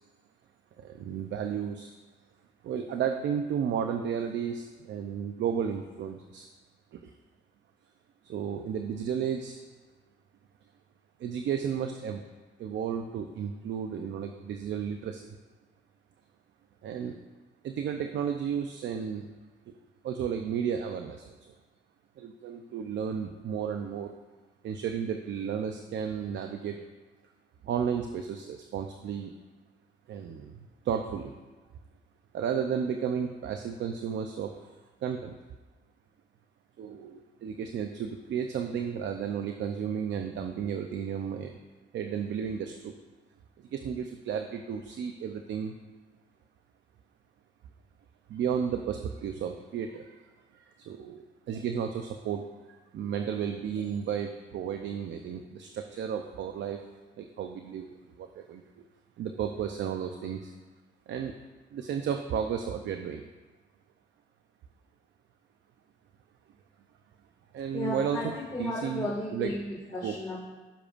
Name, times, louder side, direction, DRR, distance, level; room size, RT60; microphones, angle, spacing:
voice 1, 0.8-1.9 2.6-6.5 6.9-7.1 8.2-9.6 11.2-12.2 12.6-15.4 16.8-17.2 17.6-19.3 20.0-21.4 22.2-24.1 24.6-26.8 27.6-29.3 30.1-31.3 32.3-34.7 35.0-35.4 36.8-41.6 41.9-42.9 43.6-45.7 48.3-50.2 50.5-56.8 57.2-58.8 59.2-60.5 61.1-61.3 61.7-63.2 67.5-68.2 68.6-69.5 70.0-70.1, right 7 dB, 70° right, 5 dB, 0.6 m, -33 dB
voice 2, 67.7-70.4, left 2 dB, 20° left, -7 dB, 2.3 m, -34 dB
15.5 x 6.8 x 2.6 m, 1.3 s
cardioid pair, 90°, 20 cm